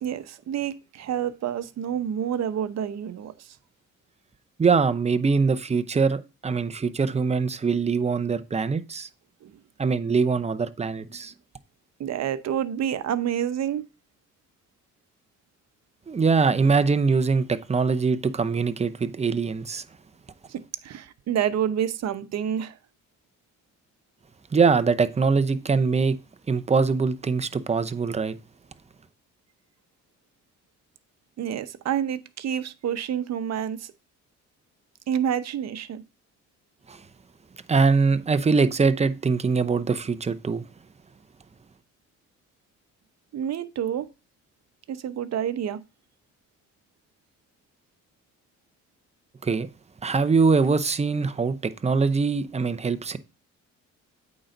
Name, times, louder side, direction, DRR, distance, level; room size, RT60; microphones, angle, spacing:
voice 1, 0.0-3.6 9.4-9.5 12.0-13.8 20.5-22.8 31.4-33.9 35.1-36.0 43.3-44.1 44.9-45.8, right 9 dB, 60° right, 0.8 m, -28 dB
voice 2, 4.6-9.1 9.8-11.3 16.1-19.8 24.5-26.2 26.5-28.4 36.9-37.0 37.7-40.6 49.4-49.7 50.0-53.2, right 4 dB, 20° right, 0.7 m, -23 dB
8.6 x 3.9 x 5.2 m
cardioid pair, 90°, 30 cm